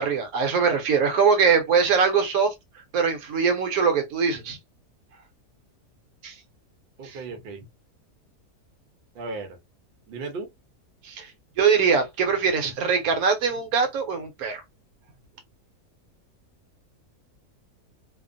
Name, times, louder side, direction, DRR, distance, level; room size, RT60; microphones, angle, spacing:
voice 1, 0.0-2.5 2.9-4.6 6.2-6.3 7.0-7.2 11.0-11.3 11.6-14.6, right 5 dB, 70° right, 1.1 m, -22 dB
voice 2, 7.0-7.6 9.1-9.6 10.1-10.5, right 3 dB, 50° right, 0.7 m, -35 dB
2.8 x 2.0 x 2.5 m
omnidirectional pair, 1.7 m